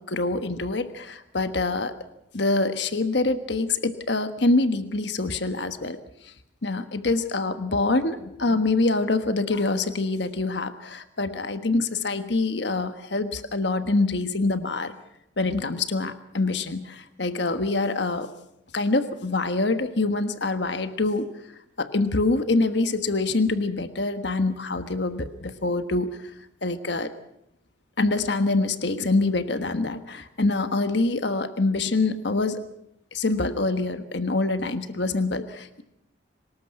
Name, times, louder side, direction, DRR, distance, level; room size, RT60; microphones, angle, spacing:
voice 1, 0.0-1.9 2.3-6.0 6.6-14.9 15.4-18.3 18.7-21.3 21.8-26.2 26.6-27.1 28.0-32.6 33.1-35.8, left 3 dB, 65° left, 10 dB, 1.4 m, -25 dB
24.5 x 20.0 x 6.0 m, 0.77 s
head